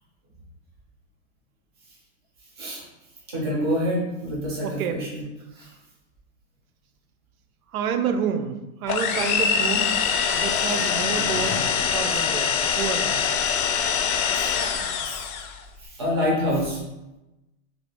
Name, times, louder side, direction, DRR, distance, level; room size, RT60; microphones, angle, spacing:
voice 1, 3.3-5.2 5.6-5.7 14.3-14.5 15.1-15.2 15.8-16.8, equal, 20° right, -4 dB, 0.4 m, -26 dB
voice 2, 4.6-5.0 5.6-5.7 7.7-10.0 10.3-13.2, right 7 dB, 90° right, 8 dB, 0.5 m, -29 dB
sound 1, 8.9-15.6, left 7 dB, 85° left, 0.5 m, -24 dB
sound 2, 10.3-13.3 13.6-13.7, left 2 dB, 30° left, 0.5 m, -40 dB
2.7 x 2.5 x 3.3 m, 0.99 s
supercardioid pair, 165°, 42 cm